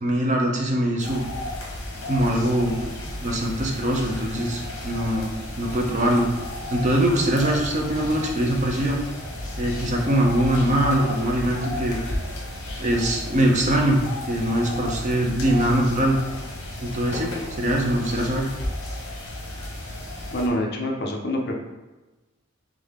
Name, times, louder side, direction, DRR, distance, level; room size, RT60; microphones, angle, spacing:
voice 1, 0.0-1.2 2.1-2.8 3.2-6.3 6.7-9.0 9.6-12.0 12.8-16.2 16.8-18.5, right 1 dB, 35° right, 0 dB, 0.5 m, -22 dB
sound 1, 1.0-20.5, left 1 dB, 65° left, 1.1 m, -33 dB
voice 2, 20.3-21.6, left 1 dB, 45° left, 1 dB, 0.6 m, -26 dB
3.7 x 3.2 x 3.5 m, 1.1 s
head